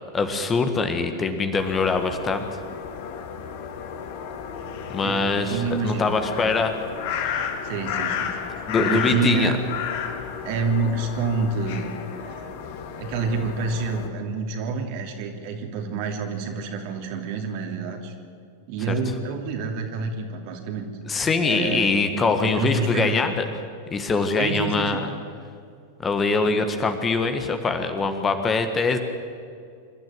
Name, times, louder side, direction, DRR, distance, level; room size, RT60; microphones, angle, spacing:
voice 1, 0.1-2.5 4.9-6.7 7.2-7.5 8.7-9.5 18.9-19.0 21.0-23.4 23.9-25.1 26.0-29.0, left 4 dB, 20° left, 7 dB, 1.7 m, -23 dB
sound 1, 1.6-14.1, left 7 dB, 50° left, 2.0 m, -32 dB
voice 2, 5.0-6.5 7.6-8.3 8.6-9.6 10.4-11.8 12.1-12.5 13.0-18.1 18.7-20.9 21.4-23.2 24.4-25.0, right 4 dB, 45° right, 4 dB, 2.8 m, -28 dB
26.0 x 12.5 x 9.2 m, 2.3 s
figure-of-eight pair, 90°, 0 cm